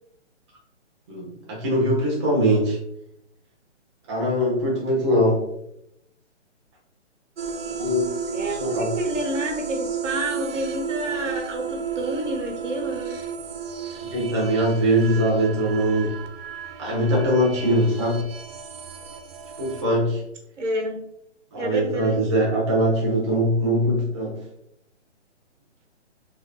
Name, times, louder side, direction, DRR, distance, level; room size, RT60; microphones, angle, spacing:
voice 1, 1.1-2.8 4.1-5.4 7.8-8.1 8.4-8.9 14.1-16.1 16.8-18.2 19.6-20.2 21.5-24.4, equal, 25° right, -4 dB, 1.0 m, -22 dB
sound 1, 7.4-19.8, right 6 dB, 55° right, 0.5 m, -33 dB
voice 2, 8.3-13.2 20.6-21.0 21.6-22.3, right 1 dB, 85° right, 2 dB, 1.3 m, -29 dB
4.7 x 3.2 x 2.2 m, 0.78 s
hypercardioid pair, 165°, 36 cm